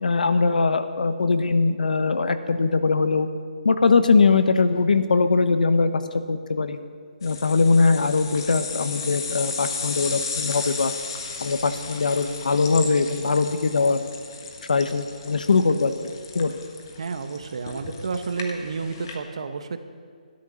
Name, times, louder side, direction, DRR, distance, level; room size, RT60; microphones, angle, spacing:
voice 1, 0.0-3.3 3.6-6.0 6.3-6.8 7.2-10.9 11.4-14.0 14.7-15.9 16.3-16.6, left 4 dB, 75° left, 10 dB, 1.1 m, -21 dB
sound 1, 7.2-19.2, left 4 dB, 30° left, 1.4 m, -35 dB
voice 2, 17.0-19.8, right 4 dB, 45° right, 9 dB, 0.9 m, -30 dB
13.0 x 12.5 x 6.3 m, 2.1 s
hypercardioid pair, 175°, 4 cm